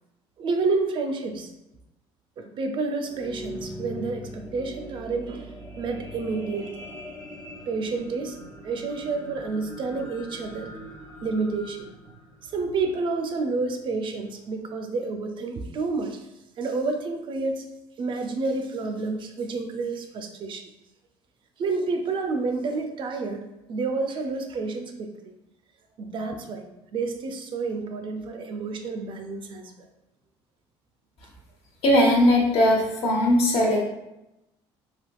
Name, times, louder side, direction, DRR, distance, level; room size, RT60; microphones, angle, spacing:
voice 1, 0.4-1.5 2.4-6.7 7.7-8.4 8.6-10.7 11.2-11.9 12.5-16.2 16.6-17.6 18.0-20.6 21.6-25.1 26.0-26.7 26.9-29.7, right 3 dB, 50° right, 5 dB, 0.4 m, -29 dB
sound 1, 2.9-13.4 14.0-14.1, equal, 30° left, 0.8 m, -41 dB
voice 2, 31.8-33.8, left 1 dB, 65° left, -1 dB, 0.9 m, -19 dB
3.4 x 2.7 x 2.3 m, 0.92 s
cardioid pair, 105°, 11 cm